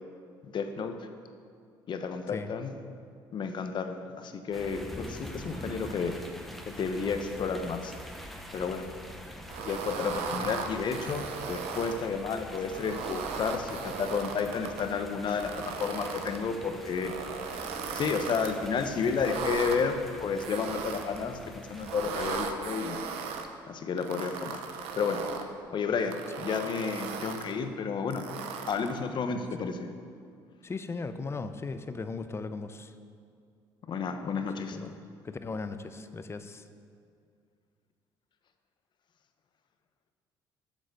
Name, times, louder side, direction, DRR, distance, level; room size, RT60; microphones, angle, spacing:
voice 1, 0.4-0.9 1.9-2.7 3.3-6.1 6.7-7.9 8.5-8.9 9.6-15.5 15.8-17.1 17.9-21.4 21.7-23.0 23.7-24.6 25.0-25.2 25.7-28.3 28.7-29.9 33.9-34.8, left 5 dB, 50° left, 7 dB, 0.9 m, -31 dB
sound 1, 4.5-22.4, equal, ahead, 1.0 m, -45 dB
sound 2, 9.5-12.0 12.6-14.8 15.3-16.4 16.9-18.5 19.1-19.8 20.4-21.2 21.8-23.5 24.0-25.5 26.0-27.5 28.1-29.0, right 6 dB, 80° right, 0.8 m, -37 dB
voice 2, 30.6-32.9 34.7-35.0 35.2-36.7, left 4 dB, 25° left, 10 dB, 0.6 m, -37 dB
8.2 x 6.3 x 6.6 m, 2.3 s
supercardioid pair, 75°, 10 cm